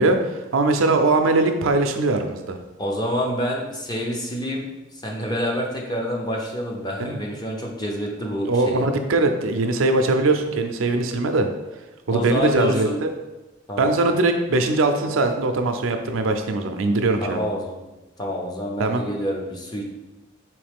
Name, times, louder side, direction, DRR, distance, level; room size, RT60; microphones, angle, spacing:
voice 1, 0.0-2.6 7.0-7.2 8.5-11.5 12.1-13.1 13.8-17.4 18.8-19.0, right 2 dB, 85° right, 6 dB, 0.5 m, -21 dB
voice 2, 2.8-4.7 5.0-8.8 12.1-13.0 13.7-13.9 17.2-17.8 18.2-19.8, equal, 20° left, -1 dB, 0.7 m, -27 dB
4.6 x 3.2 x 3.5 m, 1.1 s
head